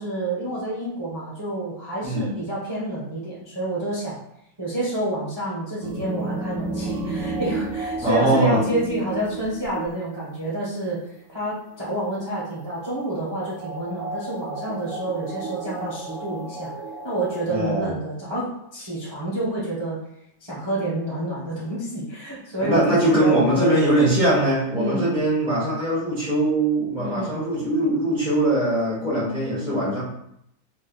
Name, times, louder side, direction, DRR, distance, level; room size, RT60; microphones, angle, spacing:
voice 1, 0.0-4.2 4.6-11.0 11.3-16.7 17.0-20.0 20.4-23.8 24.7-25.2 27.0-27.4, right 1 dB, 35° right, -7 dB, 0.4 m, -28 dB
voice 2, 2.0-2.4 8.0-8.6 17.5-17.9 22.6-30.0, right 1 dB, 5° right, -9 dB, 0.8 m, -21 dB
sound 1, 5.8-10.1 12.1-12.2 12.6-17.4, right 3 dB, 80° right, 0.7 m, -32 dB
4.3 x 3.3 x 2.3 m, 0.76 s
omnidirectional pair, 2.1 m